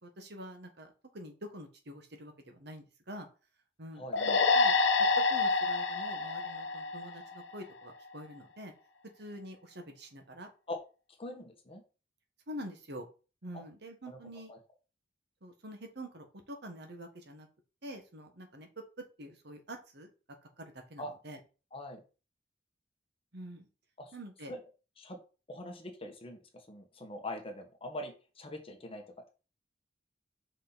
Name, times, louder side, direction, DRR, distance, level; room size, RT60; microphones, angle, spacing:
voice 1, 0.0-3.3 3.8-4.7 5.2-8.7 9.2-10.5 12.5-13.1 13.4-14.5 15.4-17.5 17.8-18.7 19.2-20.1 20.6-21.4 23.3-23.7 24.1-24.5, equal, 65° right, 5 dB, 1.5 m, -46 dB
sound 1, 4.1-7.6, left 4 dB, 80° left, 1.0 m, -28 dB
voice 2, 11.2-11.8 13.5-13.6 14.1-14.2 14.5-14.6 21.0-21.1 21.7-22.0 24.0-24.1 24.5-24.6 25.0-25.2 25.5-29.0, left 1 dB, 30° left, 4 dB, 1.4 m, -42 dB
5.8 x 4.9 x 4.1 m, 0.33 s
head